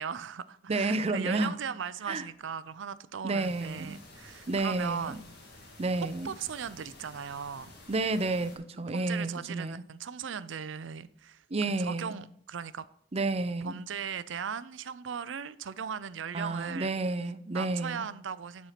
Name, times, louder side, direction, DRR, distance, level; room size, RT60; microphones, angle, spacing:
voice 1, 0.0-5.2 6.2-7.7 8.9-11.4 11.8-12.9 13.6-16.9 17.5-18.7, right 7 dB, 80° right, 0.5 m, -38 dB
voice 2, 0.7-1.5 2.1-2.2 3.2-4.0 4.5-5.1 5.8-6.3 7.9-9.8 11.5-12.2 13.1-13.8 16.3-18.1, right 3 dB, 35° right, 0.5 m, -30 dB
sound 1, 3.4-8.6, left 2 dB, 60° left, 2.2 m, -52 dB
9.8 x 4.4 x 5.8 m
head